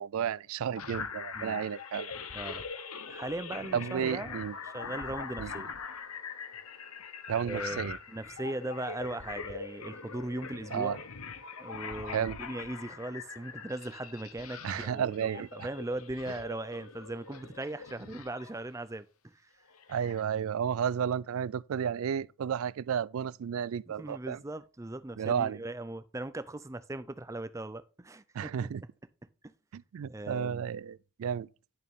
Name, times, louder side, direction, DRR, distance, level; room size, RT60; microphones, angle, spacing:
voice 1, 0.0-2.1 3.7-4.5 5.4-5.5 7.3-8.0 10.7-11.0 12.1-12.4 14.6-15.7 19.9-24.4 25.2-25.6 28.3-28.8 29.7-31.5, right 8 dB, 75° right, 0.3 m, -32 dB
sound 1, 0.8-18.7 19.7-20.2, left 5 dB, 90° left, 1.0 m, -42 dB
voice 2, 3.1-4.4 4.6-5.7 7.5-11.0 11.6-19.5 24.0-28.7 29.4-29.5 30.0-30.6, right 1 dB, 15° right, 0.5 m, -39 dB
10.5 x 6.7 x 3.6 m
head